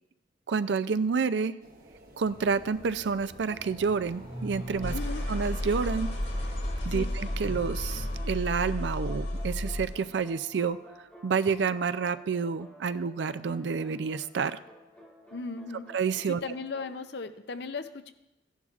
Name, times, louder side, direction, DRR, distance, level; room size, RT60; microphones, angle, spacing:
voice 1, 0.5-1.5 2.2-4.9 5.3-6.1 6.8-10.8 11.2-14.6 15.9-16.4, right 5 dB, 65° right, 13 dB, 0.4 m, -29 dB
sound 1, 1.6-6.7, right 1 dB, 50° right, 1.4 m, -51 dB
sound 2, 2.2-10.1, left 1 dB, 90° left, 2.5 m, -34 dB
sound 3, 3.5-4.3 4.8-16.9, equal, 10° left, 2.0 m, -53 dB
voice 2, 4.9-5.2 6.9-7.1 15.3-15.9 16.3-18.1, left 4 dB, 60° left, 10 dB, 0.6 m, -37 dB
15.5 x 11.0 x 2.4 m, 0.88 s
head